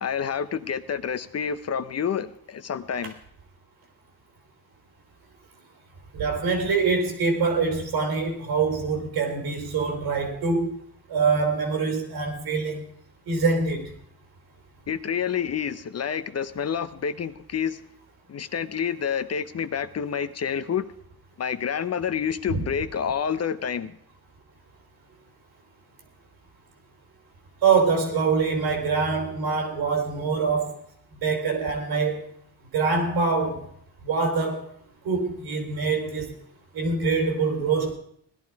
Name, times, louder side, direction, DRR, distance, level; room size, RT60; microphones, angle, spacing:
voice 1, 0.0-3.1 14.9-17.8 18.3-20.9 21.4-23.9, left 7 dB, 40° left, 12 dB, 0.8 m, -28 dB
voice 2, 6.1-10.7 11.1-12.9 13.3-13.9 22.5-22.6 27.6-30.7 31.2-32.2 32.7-33.7 34.0-34.6 35.0-36.3 36.7-37.9, right 4 dB, 80° right, 4 dB, 4.0 m, -24 dB
17.0 x 11.5 x 4.7 m, 0.66 s
cardioid pair, 105°, 38 cm